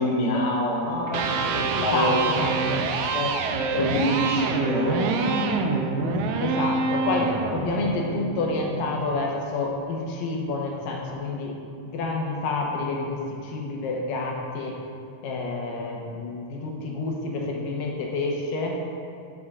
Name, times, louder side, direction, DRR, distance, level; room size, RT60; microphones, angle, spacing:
voice 1, 0.0-2.4 3.1-3.3 3.7-6.3, left 1 dB, 60° left, -4 dB, 1.4 m, -26 dB
Electric guitar, 1.0-9.1, right 4 dB, 85° right, 1.7 m, -27 dB
voice 2, 1.7-2.8 6.4-11.6 11.8-14.8 15.2-18.8, left 3 dB, 75° left, -1 dB, 2.6 m, -29 dB
13.0 x 6.5 x 2.4 m, 2.6 s
omnidirectional pair, 4.0 m